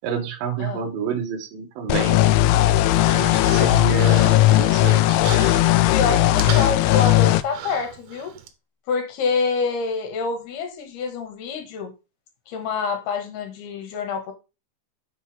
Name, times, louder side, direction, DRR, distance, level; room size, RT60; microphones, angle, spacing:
voice 1, 0.0-2.4 3.1-5.3, right 7 dB, 60° right, 2.8 m, -29 dB
sound 1, 1.9-7.4, left 15 dB, 85° left, 2.8 m, -17 dB
Human voice, 2.2-8.5, right 8 dB, 75° right, 3.1 m, -37 dB
voice 2, 5.9-8.3 8.9-11.9 12.5-14.3, left 5 dB, 65° left, 3.3 m, -26 dB
6.9 x 6.7 x 3.4 m
omnidirectional pair, 5.4 m